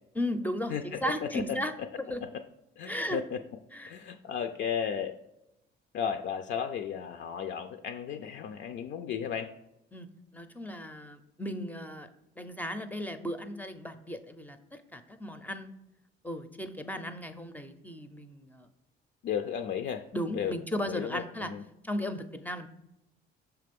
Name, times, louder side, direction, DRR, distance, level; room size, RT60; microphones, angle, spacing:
voice 1, 0.2-1.7 2.0-2.2 2.9-3.2 3.7-4.0 9.9-10.1 10.3-12.1 12.4-14.6 14.9-15.7 16.2-18.7 20.1-21.5 21.8-22.7, equal, 10° left, 8 dB, 0.5 m, -35 dB
voice 2, 0.7-1.4 2.2-2.3 2.8-3.4 3.9-5.1 5.9-9.5 19.2-20.5 20.9-21.6, left 8 dB, 60° left, 7 dB, 0.5 m, -34 dB
6.1 x 3.3 x 5.2 m, 0.86 s
cardioid pair, 115°, 21 cm